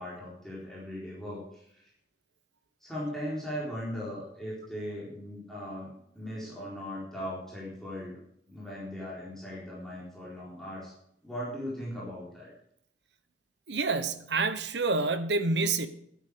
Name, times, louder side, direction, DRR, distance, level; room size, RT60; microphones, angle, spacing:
voice 1, 0.0-1.8 2.8-8.2 8.5-10.9 11.2-12.5, equal, ahead, -7 dB, 4.1 m, -38 dB
voice 2, 13.7-15.9, right 3 dB, 65° right, 11 dB, 1.0 m, -28 dB
12.5 x 8.4 x 6.8 m, 0.71 s
head